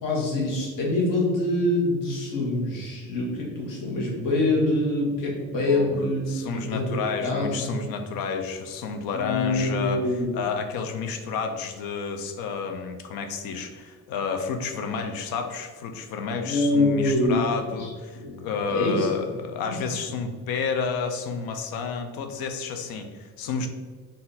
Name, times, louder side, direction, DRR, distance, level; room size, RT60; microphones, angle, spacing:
voice 1, 0.0-6.2 6.5-7.7 9.1-10.3 16.4-19.1 19.7-19.8, left 2 dB, 65° left, -3 dB, 1.5 m, -25 dB
voice 2, 6.3-10.0 10.3-23.7, left 5 dB, 85° left, 6 dB, 0.6 m, -30 dB
4.0 x 2.6 x 4.0 m, 1.5 s
cardioid pair, 170°, 35 cm